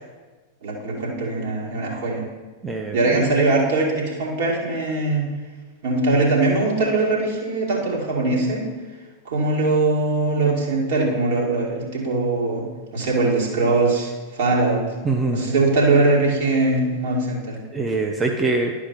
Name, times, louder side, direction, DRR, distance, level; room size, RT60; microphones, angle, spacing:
voice 1, 0.6-2.2 2.9-5.2 5.8-8.7 9.2-12.6 12.9-14.8 15.3-17.6, right 2 dB, 55° right, -3 dB, 2.4 m, -21 dB
voice 2, 2.6-3.3 15.0-15.4 17.7-18.7, right 3 dB, 15° right, 2 dB, 0.7 m, -23 dB
11.5 x 4.9 x 5.3 m, 1.3 s
figure-of-eight pair, 90°, 0 cm